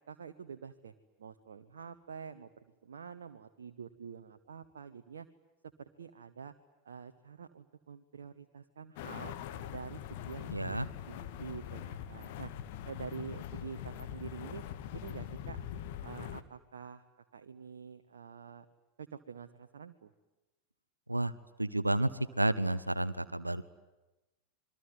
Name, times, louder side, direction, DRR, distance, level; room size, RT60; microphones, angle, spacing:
voice 1, 0.1-0.9 1.2-5.3 5.8-6.5 6.8-9.3 9.7-12.5 12.9-14.6 14.9-15.6 16.0-17.0 17.3-18.6 19.0-20.1, right 6 dB, 65° right, 6 dB, 1.3 m, -47 dB
sound 1, 9.0-16.4, left 10 dB, 50° left, 1.7 m, -43 dB
voice 2, 10.5-10.9 21.1-21.3 21.6-22.1 22.4-23.6, right 1 dB, 85° right, 15 dB, 1.0 m, -30 dB
27.0 x 23.0 x 9.6 m, 1.1 s
figure-of-eight pair, 90°, 0 cm